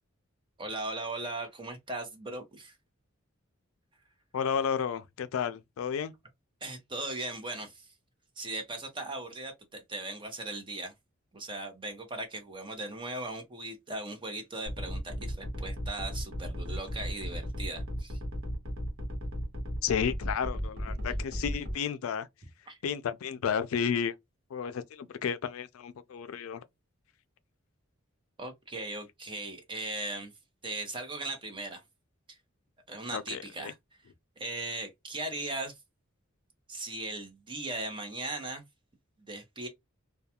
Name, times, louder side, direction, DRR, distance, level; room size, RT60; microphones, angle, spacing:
voice 1, 0.6-2.8 6.6-7.9 8.4-10.9 11.3-18.2 22.7-22.8 28.4-30.3 30.6-31.8 32.3-32.4 32.9-33.8 34.4-35.7 36.7-38.6 39.3-39.7, right 2 dB, 25° right, 0.7 m, -38 dB
voice 2, 4.3-6.1 19.8-22.3 22.8-24.1 24.5-26.6 33.1-33.7, left 7 dB, 85° left, 0.4 m, -32 dB
sound 1, 14.7-21.7, equal, 70° right, 1.1 m, -35 dB
2.3 x 2.3 x 2.7 m
head